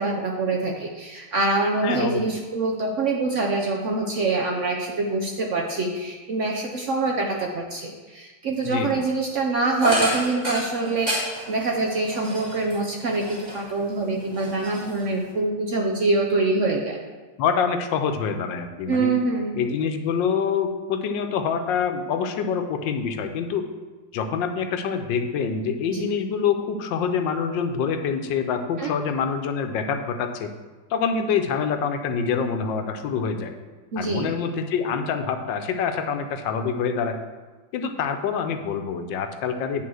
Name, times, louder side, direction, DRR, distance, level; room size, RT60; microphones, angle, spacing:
voice 1, 0.0-11.1 11.5-17.0 18.9-19.5 25.9-26.0 28.8-28.9 33.9-34.3, right 3 dB, 60° right, 0 dB, 0.8 m, -25 dB
voice 2, 1.8-2.2 8.6-9.0 17.4-19.2 19.5-23.7 24.1-30.5 30.9-33.5 34.0-37.2 37.7-39.8, left 6 dB, 85° left, 7 dB, 1.4 m, -26 dB
sound 1, 9.8-13.8 14.2-15.3, equal, 20° right, 2.3 m, -30 dB
8.6 x 3.8 x 6.2 m, 1.3 s
omnidirectional pair, 2.0 m